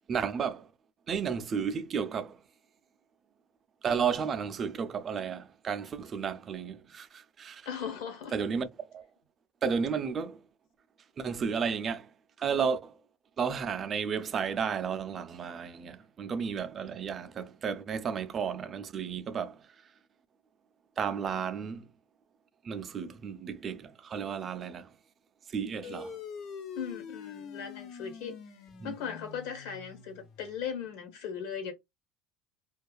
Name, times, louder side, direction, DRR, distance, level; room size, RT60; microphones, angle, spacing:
voice 1, 0.1-0.7 1.1-2.4 3.8-7.7 8.3-9.0 9.6-10.4 11.2-12.1 12.4-12.9 13.4-19.6 21.0-21.9 22.6-24.9 25.5-26.2 28.8-28.9, right 6 dB, 30° right, 0.3 m, -33 dB
voice 2, 7.6-8.4 25.9-26.1 26.7-28.4 28.8-31.7, left 7 dB, 80° left, 1.2 m, -38 dB
sound 1, 25.8-30.7, left 6 dB, 45° left, 0.4 m, -45 dB
2.4 x 2.3 x 2.2 m
cardioid pair, 150°, 0 cm